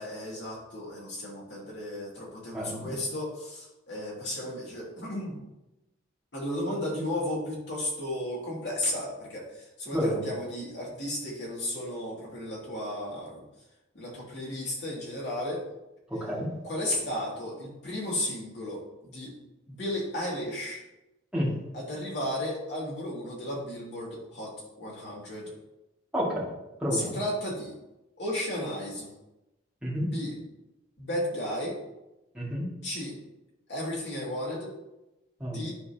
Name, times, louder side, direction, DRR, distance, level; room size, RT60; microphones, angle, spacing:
voice 1, 0.0-5.4 6.3-13.4 13.9-15.6 16.6-19.3 19.7-20.8 21.7-25.5 26.9-27.8 28.2-29.1 30.0-30.3 31.0-31.8 32.8-33.2 33.7-34.7 35.4-35.7, left 1 dB, 60° left, -5 dB, 2.8 m, -34 dB
voice 2, 2.5-2.9 9.9-10.3 16.1-16.5 21.3-21.5 26.1-26.5 26.8-27.2 29.8-30.1 32.3-32.7 35.4-35.6, equal, 5° right, -7 dB, 2.4 m, -29 dB
12.0 x 4.6 x 3.0 m, 0.95 s
head